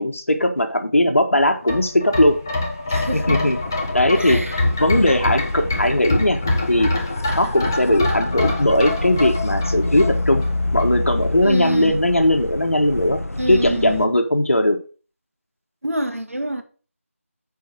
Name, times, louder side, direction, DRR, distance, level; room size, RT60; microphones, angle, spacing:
voice 1, 0.0-2.4 3.1-3.6 3.9-6.4 6.7-6.9 7.3-10.5 10.7-13.2 13.5-14.8, left 1 dB, 65° left, 1.7 m, -18 dB
sound 1, 1.6-10.5 10.8-10.9, left 2 dB, 15° left, 0.6 m, -25 dB
sound 2, 2.9-14.1, left 2 dB, 80° left, 0.6 m, -27 dB
voice 2, 2.9-3.5 4.2-4.6 11.4-12.0 13.4-14.1 15.8-16.6, right 1 dB, 70° right, 1.7 m, -26 dB
9.3 x 4.9 x 4.8 m
figure-of-eight pair, 165°, 8 cm